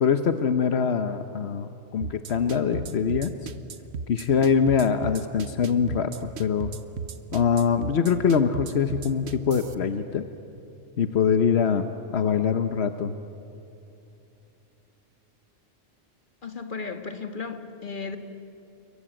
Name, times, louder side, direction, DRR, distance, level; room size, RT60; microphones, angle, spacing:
voice 1, 0.0-3.3 4.1-6.7 7.3-10.2 11.0-11.8 12.1-13.1, left 6 dB, 80° left, 9 dB, 1.2 m, -23 dB
sound 1, 2.0-9.7, right 5 dB, 85° right, 1.3 m, -35 dB
voice 2, 16.4-18.2, left 4 dB, 50° left, 7 dB, 1.9 m, -35 dB
28.0 x 22.5 x 9.0 m, 2.8 s
omnidirectional pair, 1.1 m